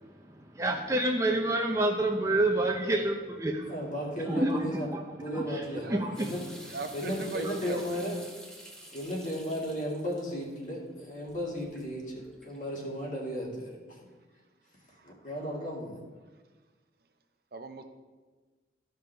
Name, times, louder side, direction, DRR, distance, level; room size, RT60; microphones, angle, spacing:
voice 1, 0.6-3.7 4.3-4.7 4.9-5.0 5.3-5.6 5.9-6.1, right 1 dB, 15° right, 1 dB, 0.5 m, -27 dB
voice 2, 3.7-4.9 5.2-6.4 6.9-8.1 8.9-14.0 15.0-16.0, equal, 45° left, -3 dB, 2.0 m, -35 dB
sound 1, 6.1-13.0, right 1 dB, 5° left, 1.1 m, -50 dB
voice 3, 6.7-7.8 14.9-15.1 17.5-17.8, right 3 dB, 55° right, 6 dB, 0.7 m, -39 dB
14.0 x 5.3 x 3.4 m, 1.3 s
head